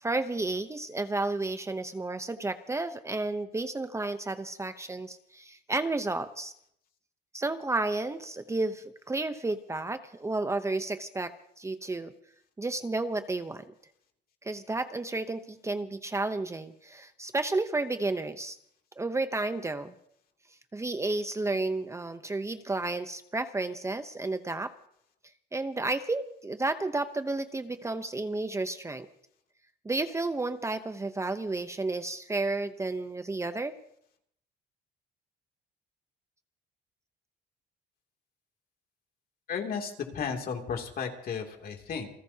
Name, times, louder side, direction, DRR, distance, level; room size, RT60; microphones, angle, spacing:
voice 1, 0.0-6.5 7.3-11.3 11.6-12.1 12.6-13.6 14.4-18.6 19.0-19.9 20.7-24.7 25.5-29.1 29.8-33.7, right 2 dB, 15° right, 9 dB, 0.8 m, -32 dB
voice 2, 39.5-42.1, left 6 dB, 55° left, 3 dB, 2.8 m, -34 dB
28.5 x 15.5 x 2.9 m, 0.70 s
cardioid pair, 115°, 18 cm